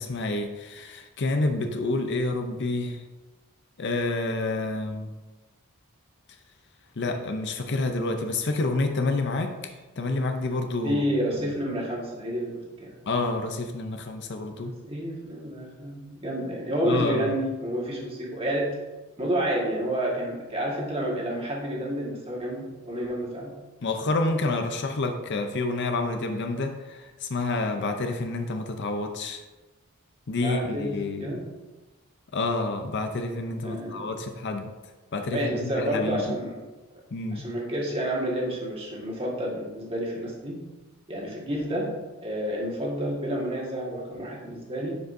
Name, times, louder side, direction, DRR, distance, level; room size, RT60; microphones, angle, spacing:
voice 1, 0.0-3.0 3.8-5.1 7.0-11.0 13.1-14.7 16.9-17.3 23.8-29.4 30.3-31.4 32.3-34.7 35.1-36.4 37.1-37.5, left 2 dB, 50° left, 6 dB, 0.6 m, -28 dB
voice 2, 10.8-12.9 14.8-18.7 19.2-23.6 30.4-30.9 31.2-31.4 33.6-34.1 35.3-36.6 37.3-40.6 41.1-41.9 42.2-44.9, equal, 25° right, -3 dB, 1.6 m, -29 dB
11.0 x 5.1 x 2.7 m, 1.2 s
head